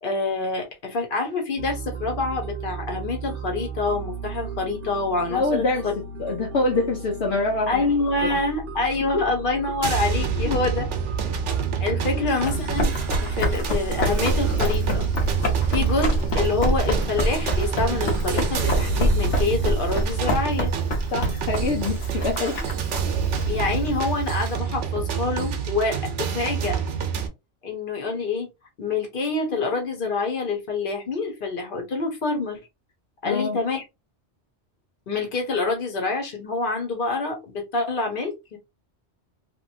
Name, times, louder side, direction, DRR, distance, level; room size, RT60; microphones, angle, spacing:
voice 1, 0.0-5.9 7.7-10.9 11.8-12.9 13.2-15.1 15.7-20.7 23.5-26.8 27.6-28.5 28.8-32.6 33.2-33.8 35.1-38.6, left 3 dB, 50° left, 1.1 m, -26 dB
sound 1, 1.6-19.7, right 4 dB, 55° right, 0.7 m, -35 dB
voice 2, 5.3-5.9 6.2-7.8 9.1-9.2 10.4-10.6 12.1-12.2 21.1-22.6 33.2-33.6, left 2 dB, 70° left, 0.9 m, -25 dB
sound 2, 9.8-27.3, right 6 dB, 90° right, 1.0 m, -27 dB
Run, 12.3-24.5, equal, 90° left, 1.3 m, -27 dB
3.0 x 2.6 x 2.7 m
omnidirectional pair, 1.2 m